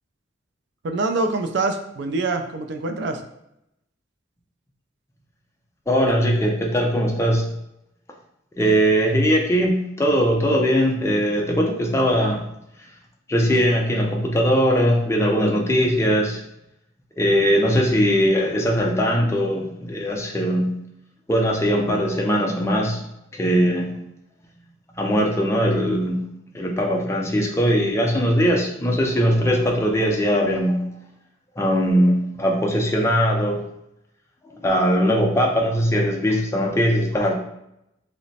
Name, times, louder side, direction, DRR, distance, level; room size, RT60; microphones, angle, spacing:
voice 1, 0.8-3.2, right 3 dB, 60° right, 6 dB, 0.3 m, -25 dB
voice 2, 5.9-7.5 8.6-12.4 13.3-16.4 17.2-20.7 21.3-23.0 23.3-23.9 25.0-26.2 26.5-30.8 31.6-33.6 34.5-37.3, equal, 15° left, 0 dB, 0.4 m, -20 dB
3.1 x 2.0 x 4.0 m, 0.82 s
head